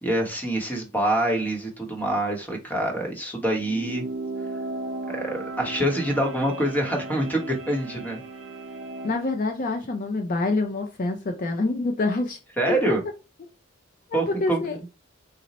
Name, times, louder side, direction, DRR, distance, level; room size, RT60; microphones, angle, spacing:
voice 1, 0.0-4.0 5.1-8.2 12.6-13.0 14.1-14.6, right 1 dB, 10° left, 0.9 m, -25 dB
sound 1, 3.5-9.3, right 2 dB, 80° right, 0.6 m, -35 dB
voice 2, 9.0-12.4 12.7-12.8 14.1-14.8, left 3 dB, 40° left, 0.4 m, -26 dB
4.0 x 2.1 x 4.0 m
head